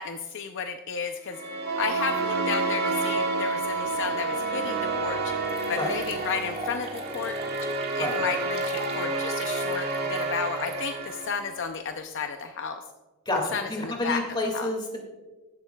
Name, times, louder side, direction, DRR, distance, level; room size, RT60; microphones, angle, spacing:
voice 1, 0.0-1.4 1.8-5.3 5.7-7.3 8.0-12.8 13.5-14.2 14.5-14.7, left 5 dB, 55° left, 6 dB, 0.5 m, -32 dB
sound 1, 1.3-11.7, right 2 dB, 50° right, 2.0 m, -31 dB
Wind instrument woodwind instrument, 1.6-5.8, right 6 dB, 85° right, 0.5 m, -30 dB
sound 2, 4.8-4.9 5.4-11.7, right 1 dB, 25° right, 1.5 m, -42 dB
voice 2, 13.3-15.0, left 2 dB, 20° left, 2 dB, 2.1 m, -29 dB
15.0 x 11.5 x 2.3 m, 1.3 s
head